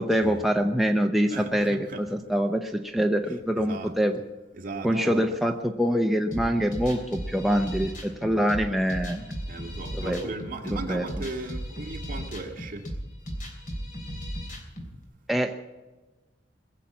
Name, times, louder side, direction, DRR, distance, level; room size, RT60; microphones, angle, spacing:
voice 1, 0.0-4.2 4.8-9.3 9.9-10.2 10.6-11.1 15.3-15.6, equal, ahead, 2 dB, 0.7 m, -25 dB
voice 2, 1.3-2.0 3.6-3.9 4.5-5.4 9.5-12.9, right 2 dB, 45° right, 1 dB, 2.2 m, -37 dB
sound 1, 6.3-14.9, equal, 45° left, 3.3 m, -36 dB
21.5 x 7.4 x 8.4 m, 1.2 s
head